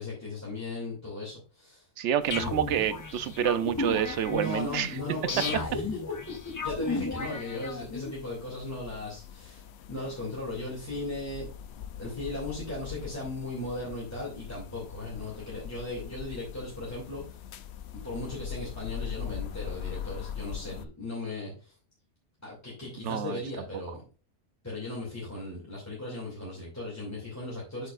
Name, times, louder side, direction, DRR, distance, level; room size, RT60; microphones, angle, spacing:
voice 1, 0.0-1.8 2.3-2.5 4.3-5.8 6.5-11.5 12.0-17.4 18.0-21.7 22.4-24.0 24.6-27.9, left 2 dB, 15° left, -6 dB, 2.6 m, -37 dB
voice 2, 2.0-5.0 23.0-23.4, right 9 dB, 80° right, 13 dB, 1.0 m, -28 dB
sound 1, 2.2-20.9, left 8 dB, 70° left, 0.8 m, -43 dB
sound 2, 2.3-8.1, left 3 dB, 30° left, 0.3 m, -35 dB
8.1 x 6.7 x 2.5 m, 0.35 s
omnidirectional pair, 1.2 m